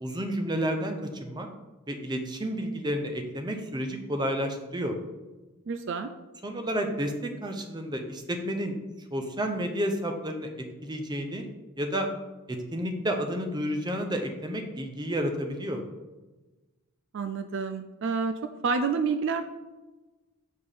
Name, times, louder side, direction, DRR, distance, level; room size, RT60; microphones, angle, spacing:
voice 1, 0.0-1.5 1.9-5.0 6.4-8.7 9.1-11.4 11.8-12.1 12.5-15.8, equal, 20° right, 5 dB, 0.7 m, -31 dB
voice 2, 5.7-6.1 17.1-18.3 18.6-19.5, right 5 dB, 55° right, 8 dB, 0.4 m, -28 dB
7.3 x 4.3 x 5.0 m, 1.2 s
head